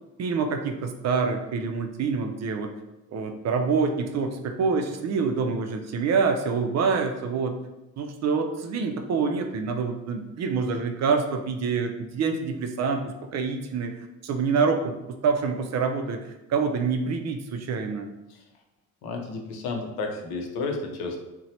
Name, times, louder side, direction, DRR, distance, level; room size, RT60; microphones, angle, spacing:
voice 1, 0.2-2.7 3.1-7.6 8.0-13.9 14.2-14.9 15.2-18.1, right 5 dB, 45° right, 5 dB, 0.4 m, -26 dB
voice 2, 19.0-21.2, left 3 dB, 70° left, 2 dB, 0.6 m, -32 dB
2.8 x 2.1 x 2.7 m, 0.94 s
hypercardioid pair, 55°, 39 cm